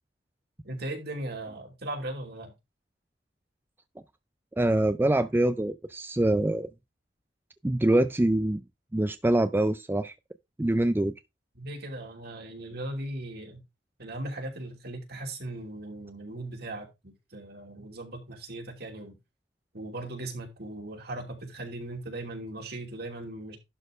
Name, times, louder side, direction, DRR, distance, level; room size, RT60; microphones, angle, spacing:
voice 1, 0.6-2.5 11.6-13.6 14.0-19.2 19.7-23.6, right 1 dB, 60° right, 2.8 m, -38 dB
voice 2, 4.6-6.7 7.6-8.6 8.9-10.1 10.6-11.1, right 1 dB, 10° right, 0.4 m, -24 dB
11.5 x 4.2 x 5.1 m
head